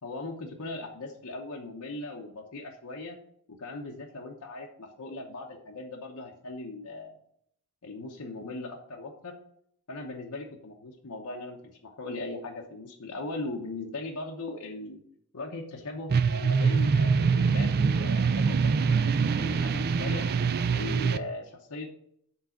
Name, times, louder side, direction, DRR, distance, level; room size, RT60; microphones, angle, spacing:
voice 1, 0.0-3.2 3.5-7.1 7.8-9.4 9.9-15.0 15.3-20.3 20.7-21.9, left 2 dB, 80° left, 0 dB, 0.9 m, -39 dB
sound 1, 16.1-21.2, right 5 dB, 45° right, 0.4 m, -24 dB
7.3 x 4.0 x 5.7 m, 0.70 s
head